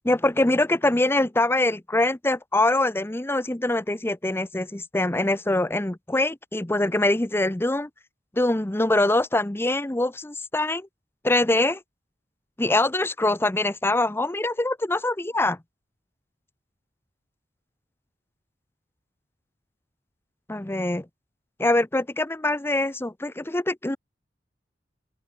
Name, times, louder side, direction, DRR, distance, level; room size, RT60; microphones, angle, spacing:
voice 1, 0.0-7.9 8.3-10.9 11.2-11.8 12.6-15.6 20.5-21.1 21.6-24.0, left 2 dB, 15° left, 0.7 m, -24 dB
head